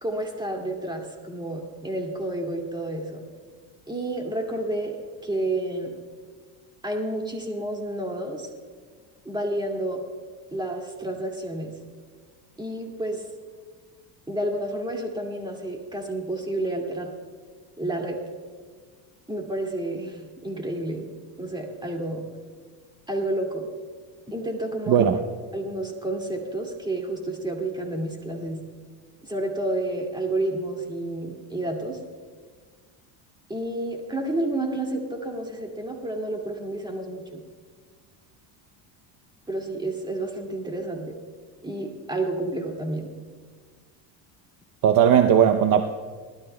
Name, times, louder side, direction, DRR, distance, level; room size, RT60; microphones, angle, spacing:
voice 1, 0.0-3.2 3.9-5.0 5.2-6.0 6.8-8.5 9.3-10.0 10.5-11.7 12.6-13.2 14.3-17.1 17.8-18.2 19.3-21.0 21.4-22.2 23.1-23.7 24.3-25.1 25.5-28.6 29.2-32.0 33.5-37.4 39.5-41.2 41.6-43.1, right 1 dB, 10° right, 1 dB, 2.2 m, -30 dB
voice 2, 24.9-25.2 44.8-45.8, right 9 dB, 45° right, 6 dB, 0.7 m, -17 dB
20.0 x 12.5 x 2.2 m, 1.5 s
supercardioid pair, 100°, 47 cm